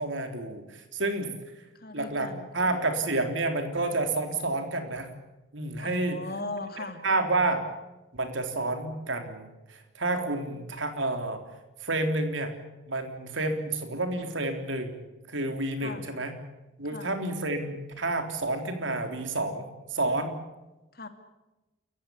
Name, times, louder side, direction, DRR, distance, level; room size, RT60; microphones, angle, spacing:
voice 1, 0.0-1.6 1.9-5.1 5.5-6.2 7.0-7.6 8.1-11.4 11.8-12.5 12.9-15.0 15.3-16.4 16.8-20.4, right 2 dB, 75° right, 6 dB, 3.6 m, -30 dB
voice 2, 1.7-2.8 5.8-7.0 15.8-16.1 16.9-17.1 20.9-21.1, left 2 dB, 50° left, 8 dB, 2.5 m, -39 dB
28.5 x 15.5 x 8.7 m, 1.0 s
head